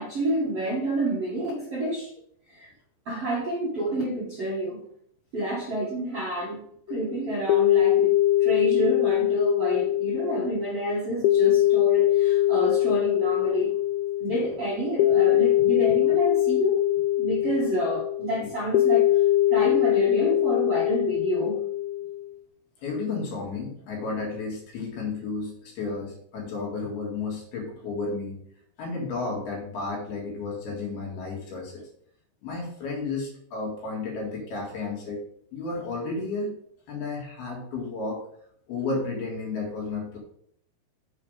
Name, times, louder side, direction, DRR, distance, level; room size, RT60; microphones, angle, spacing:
voice 1, 0.0-2.1 2.5-2.7 3.1-4.8 5.3-8.1 8.4-13.7 14.2-16.8 17.2-19.2 19.5-21.6, right 2 dB, 55° right, -6 dB, 1.7 m, -29 dB
sound 1, 6.9-22.3, left 14 dB, 80° left, 2.7 m, -22 dB
voice 2, 22.8-28.4 28.8-31.9 32.4-35.2 35.5-36.5 36.9-38.2 38.7-40.2, left 3 dB, 60° left, -1 dB, 3.3 m, -32 dB
7.3 x 5.6 x 5.0 m, 0.65 s
omnidirectional pair, 5.6 m